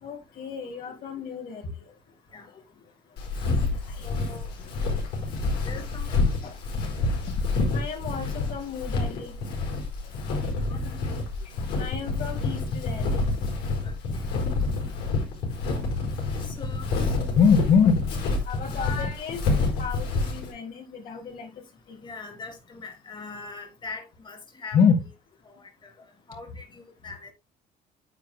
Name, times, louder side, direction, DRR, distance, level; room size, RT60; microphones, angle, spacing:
voice 1, 0.0-1.6 3.7-4.1 6.4-6.5 7.3-7.4 7.7-9.4 10.5-11.2 11.4-11.5 11.8-13.3 17.2-18.0 18.5-19.4 19.8-21.5 21.9-22.0 24.7-25.0, left 6 dB, 60° left, 3.6 m, -27 dB
Walk footsteps, 3.2-20.5, left 3 dB, 90° left, 5.0 m, -28 dB
voice 2, 4.0-4.5 5.6-6.3 10.7-10.8 11.0-11.1 11.8-12.1 13.8-14.2 14.6-14.7 16.4-16.9 22.0-24.8 25.4-25.9 26.3-27.3, left 4 dB, 25° left, 3.0 m, -41 dB
9.8 x 8.7 x 2.2 m
cardioid pair, 110°, 17 cm